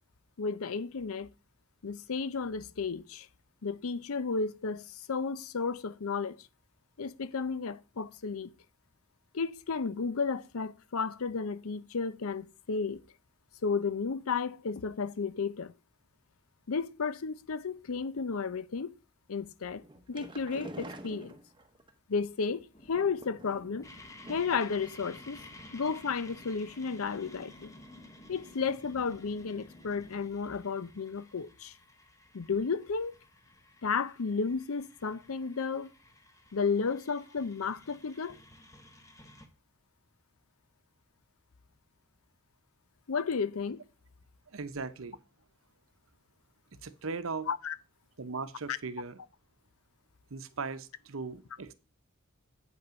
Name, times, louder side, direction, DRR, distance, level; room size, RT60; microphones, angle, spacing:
voice 1, 0.4-1.3 1.8-3.3 3.6-6.4 7.0-8.5 9.3-13.0 13.6-15.7 16.7-18.9 19.3-19.8 20.1-21.4 22.1-23.9 24.3-25.4 25.7-27.7 28.3-31.7 32.3-33.1 33.8-35.9 36.5-38.4 43.1-43.8 47.5-47.8 48.7-48.8, left 5 dB, 85° left, 0.6 m, -33 dB
sound 1, 19.8-21.9 22.9-23.8 24.2-24.7 24.9-25.0 25.4-25.5, right 1 dB, 20° right, 0.8 m, -46 dB
sound 2, 22.7-30.3, left 1 dB, 30° left, 1.7 m, -54 dB
sound 3, 23.8-39.5, left 2 dB, 15° left, 1.0 m, -55 dB
voice 2, 44.5-45.2 46.8-47.5 48.2-49.2 50.3-51.7, right 4 dB, 70° right, 0.8 m, -38 dB
8.4 x 5.6 x 5.1 m
head